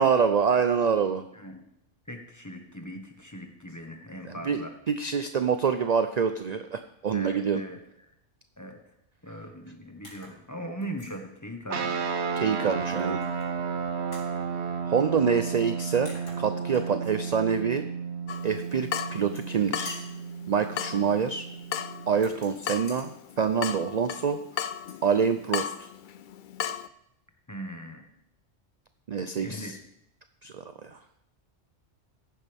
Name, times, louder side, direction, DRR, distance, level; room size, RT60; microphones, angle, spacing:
voice 1, 0.0-1.2 4.2-7.6 12.4-13.2 14.9-16.1 16.4-17.9 18.4-20.0 20.5-21.4 22.1-24.4 25.0-25.9 29.1-29.8 30.4-31.0, right 6 dB, 45° right, 9 dB, 0.5 m, -26 dB
voice 2, 1.3-1.6 2.1-4.7 7.1-7.8 8.6-8.8 9.2-12.2 27.5-28.1 29.4-29.7, equal, 15° left, 3 dB, 1.4 m, -40 dB
sound 1, 10.0-10.4 10.8-11.2 12.9-13.5 14.1-14.3 15.7-15.8 16.1-17.3 19.0-19.6 19.9-20.2 22.1-23.1 24.7-25.2 25.5-25.8, left 1 dB, 85° left, 3.1 m, -47 dB
sound 2, 11.7-22.4, right 6 dB, 65° right, 1.3 m, -33 dB
Water tap faucet / Drip, 18.3-26.9, left 9 dB, 60° left, 0.5 m, -36 dB
15.0 x 10.5 x 3.5 m, 0.79 s
omnidirectional pair, 1.3 m